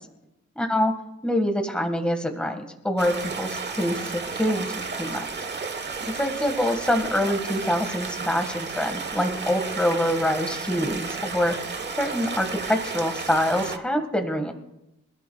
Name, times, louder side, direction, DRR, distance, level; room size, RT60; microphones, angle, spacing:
voice 1, 0.5-0.9 1.2-5.2 6.1-11.5 12.0-14.5, left 1 dB, 5° left, 4 dB, 1.6 m, -25 dB
Stream, 3.0-13.8, right 4 dB, 35° right, 1.2 m, -33 dB
26.5 x 14.5 x 2.3 m, 0.91 s
wide cardioid pair, 125°, 30 cm